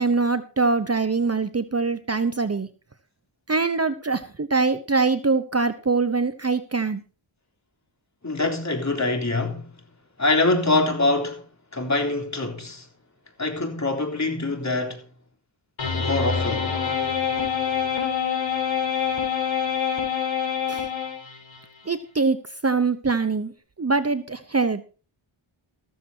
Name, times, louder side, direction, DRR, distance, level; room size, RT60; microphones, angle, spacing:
voice 1, 0.0-2.7 3.5-7.0 20.7-20.9 21.9-22.4 22.6-23.5 23.8-24.8, right 4 dB, 30° right, 1.0 m, -23 dB
voice 2, 8.2-9.7 10.2-11.4 11.7-12.9 13.4-15.0 16.0-16.7, left 2 dB, 35° left, 3.7 m, -24 dB
sound 1, 15.8-21.6, left 7 dB, 60° left, 5.1 m, -26 dB
14.5 x 14.0 x 2.9 m
wide cardioid pair, 75°, 50 cm